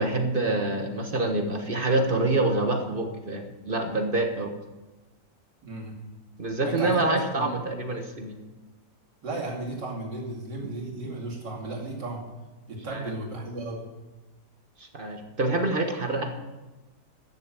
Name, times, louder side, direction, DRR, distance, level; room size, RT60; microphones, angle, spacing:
voice 1, 0.0-4.5 6.4-8.3 12.9-13.1 14.8-16.3, right 2 dB, 35° right, 4 dB, 1.2 m, -26 dB
voice 2, 5.6-6.0 6.6-7.5 9.2-12.2 12.7-13.9, right 2 dB, 75° right, -2 dB, 3.1 m, -34 dB
13.5 x 7.0 x 7.6 m, 1.1 s
omnidirectional pair, 1.9 m